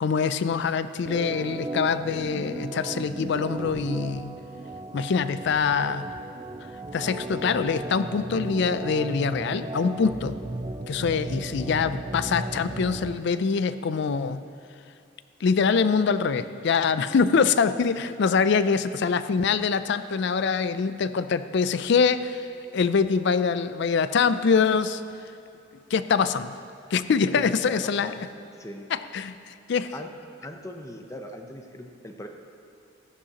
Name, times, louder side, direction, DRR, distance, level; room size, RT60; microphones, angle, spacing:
voice 1, 0.0-4.3 4.9-6.1 6.9-10.4 10.9-14.4 15.4-22.5 22.7-25.0 25.9-26.6 26.9-28.1 28.9-29.9, left 5 dB, 60° left, 13 dB, 0.4 m, -24 dB
Organ, 1.0-13.2, right 2 dB, 20° right, 0.3 m, -35 dB
voice 2, 27.3-28.2 28.6-28.9 29.9-30.1 30.4-32.3, left 1 dB, 15° left, 4 dB, 0.7 m, -39 dB
14.0 x 11.5 x 2.9 m, 2.5 s
head